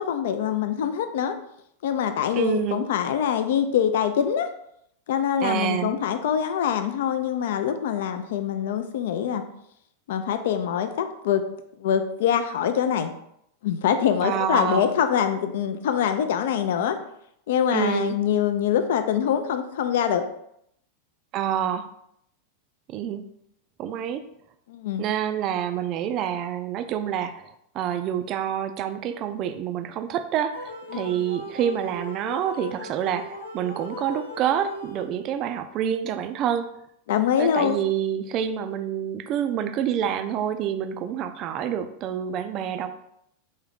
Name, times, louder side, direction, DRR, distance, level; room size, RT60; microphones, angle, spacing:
voice 1, 0.0-1.3 1.8-4.5 5.1-9.4 10.1-11.5 11.8-13.1 13.6-17.0 17.5-20.2 24.7-25.0 30.9-31.2 37.1-37.8, left 8 dB, 55° left, 8 dB, 0.4 m, -24 dB
voice 2, 2.3-2.9 5.4-6.0 14.2-14.9 17.7-18.2 21.3-21.9 22.9-23.2 23.8-24.2 25.0-36.7 37.4-42.9, right 9 dB, 35° right, 9 dB, 0.3 m, -27 dB
sound 1, 30.5-35.4, right 1 dB, 85° left, 0.7 m, -38 dB
3.6 x 2.7 x 3.4 m, 0.75 s
figure-of-eight pair, 90°, 0 cm